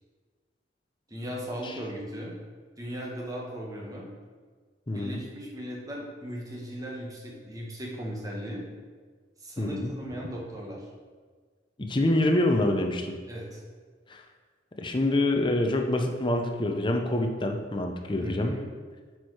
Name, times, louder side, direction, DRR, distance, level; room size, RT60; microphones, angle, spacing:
voice 1, 1.1-2.3 2.8-4.1 4.9-8.6 9.4-10.9 13.3-13.6 18.2-18.7, equal, 20° right, -2 dB, 1.4 m, -37 dB
voice 2, 4.9-5.2 9.6-9.9 11.8-13.2 14.1-14.2 14.8-18.6, left 1 dB, 25° left, 3 dB, 0.7 m, -26 dB
8.6 x 4.7 x 4.8 m, 1.5 s
head